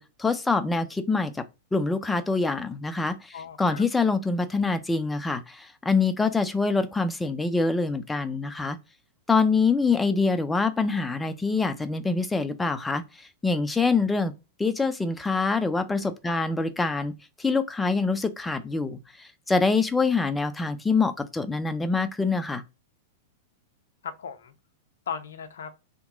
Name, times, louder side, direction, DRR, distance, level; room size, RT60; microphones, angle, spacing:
voice 1, 0.0-1.3 1.7-8.8 9.3-14.3 14.6-17.1 17.4-22.6, left 4 dB, 10° left, 0.4 m, -25 dB
voice 2, 3.3-3.8 15.9-16.4 24.0-24.5 25.1-25.7, left 7 dB, 70° left, 0.5 m, -37 dB
2.9 x 2.1 x 3.8 m
figure-of-eight pair, 100°, 0 cm